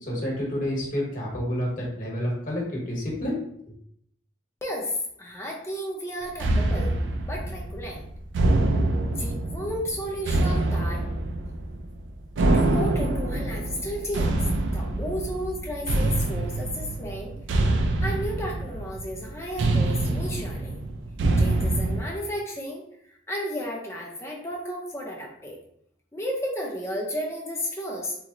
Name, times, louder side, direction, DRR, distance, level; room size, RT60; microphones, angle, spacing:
voice 1, 0.0-3.4, equal, 45° left, -3 dB, 1.1 m, -29 dB
voice 2, 4.6-6.9 7.2-8.1 9.2-11.1 12.5-14.4 14.7-17.3 18.0-20.7 21.4-22.8 23.3-25.6 26.1-28.1, equal, 15° left, -2 dB, 0.6 m, -33 dB
sound 1, 6.4-22.0, right 2 dB, 85° right, 0.4 m, -25 dB
3.0 x 2.1 x 3.7 m, 0.70 s
head